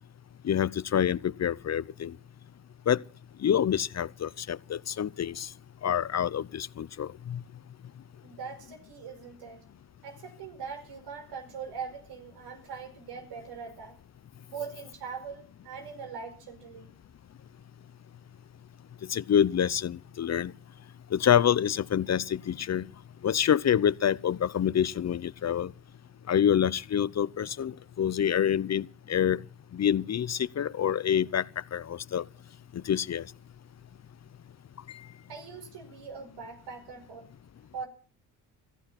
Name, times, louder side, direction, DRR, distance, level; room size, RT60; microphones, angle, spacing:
voice 1, 0.4-2.1 2.9-3.0 3.4-5.5 5.8-7.4 19.1-20.5 21.1-22.9 23.2-25.7 26.3-29.4 29.7-32.2 32.7-33.2, left 9 dB, 40° left, 0.7 m, -27 dB
voice 2, 8.2-9.6 10.0-14.0 14.5-16.9 35.3-37.3 37.7-37.9, right 6 dB, 75° right, 5.2 m, -41 dB
20.0 x 14.0 x 4.2 m
supercardioid pair, 70°, 41 cm